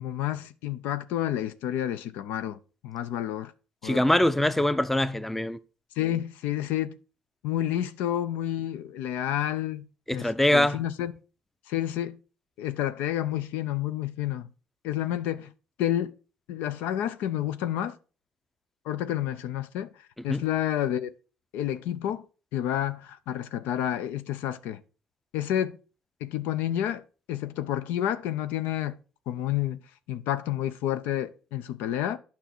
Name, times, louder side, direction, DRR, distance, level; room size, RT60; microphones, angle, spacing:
voice 1, 0.0-3.5 3.8-4.0 6.0-7.0 7.4-11.1 11.7-12.2 12.6-14.5 14.8-15.5 15.8-16.1 16.5-18.0 18.8-21.1 21.5-22.3 22.5-24.8 25.3-25.8 26.2-29.0 29.3-29.8 30.1-32.2, left 11 dB, 80° left, 0.5 m, -30 dB
voice 2, 3.8-5.6 10.1-10.8 20.3-20.4, left 1 dB, 5° left, 0.6 m, -23 dB
9.0 x 5.6 x 4.3 m
supercardioid pair, 70°, 3 cm